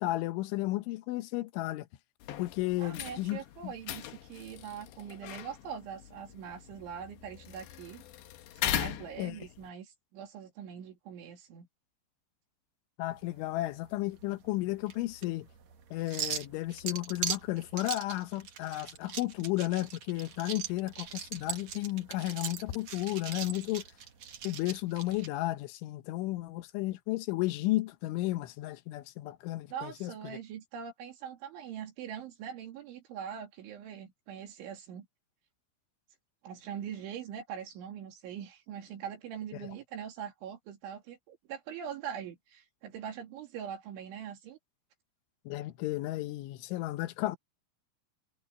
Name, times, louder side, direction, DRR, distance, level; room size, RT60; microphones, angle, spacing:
voice 1, 0.0-1.9 2.4-3.7 9.2-9.4 13.0-15.5 15.9-23.8 24.4-30.4 45.5-47.4, left 17 dB, 90° left, 3.4 m, -33 dB
sound 1, 2.2-9.7, left 12 dB, 75° left, 3.5 m, -40 dB
voice 2, 2.8-8.0 8.6-11.7 29.7-35.1 36.4-44.6, right 8 dB, 85° right, 5.2 m, -42 dB
sound 2, 13.1-25.3, right 8 dB, 50° right, 2.3 m, -41 dB
omnidirectional pair, 5.3 m